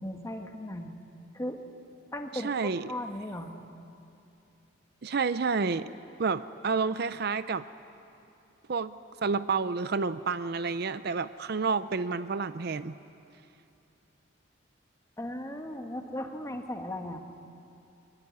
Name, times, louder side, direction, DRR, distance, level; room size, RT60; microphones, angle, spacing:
voice 1, 0.0-0.9 1.3-1.6 2.1-3.5 15.2-17.2, left 1 dB, 15° left, 4 dB, 1.5 m, -37 dB
voice 2, 2.3-2.9 5.0-5.9 6.2-7.7 8.7-8.9 9.2-12.9, right 4 dB, 50° right, 13 dB, 0.5 m, -29 dB
22.5 x 22.5 x 9.8 m, 2.7 s
head